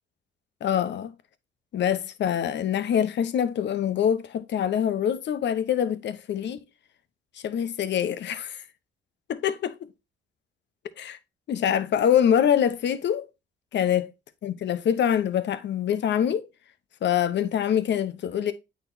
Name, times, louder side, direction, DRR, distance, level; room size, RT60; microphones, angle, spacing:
voice 1, 0.6-1.1 1.7-6.6 7.4-8.6 9.3-9.8 11.0-11.2 11.5-13.3 13.7-14.1 14.4-16.4 17.0-18.5, left 9 dB, 65° left, 0.8 m, -24 dB
8.7 x 4.1 x 2.6 m
cardioid pair, 90°, 20 cm